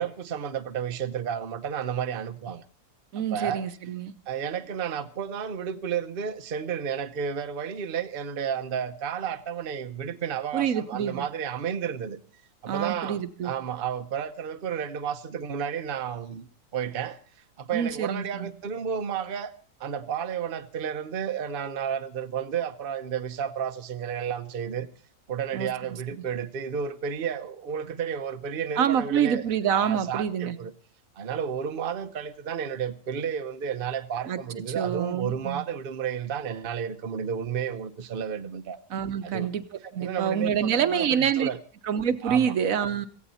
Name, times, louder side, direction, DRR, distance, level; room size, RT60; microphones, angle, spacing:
voice 1, 0.0-2.6 3.3-3.6 4.3-12.2 12.6-17.2 17.6-19.5 19.8-24.9 25.3-29.4 29.7-30.7 31.2-38.8 39.2-39.5 40.0-41.6 42.2-42.5, right 8 dB, 40° right, 1.0 m, -32 dB
voice 2, 3.1-4.1 10.5-11.3 12.7-13.5 17.7-18.5 25.5-25.7 28.8-30.6 34.3-34.4 34.7-35.7 38.9-39.6 39.9-41.5 41.8-43.1, right 8 dB, 60° right, 1.3 m, -26 dB
17.0 x 16.5 x 4.2 m
omnidirectional pair, 1.7 m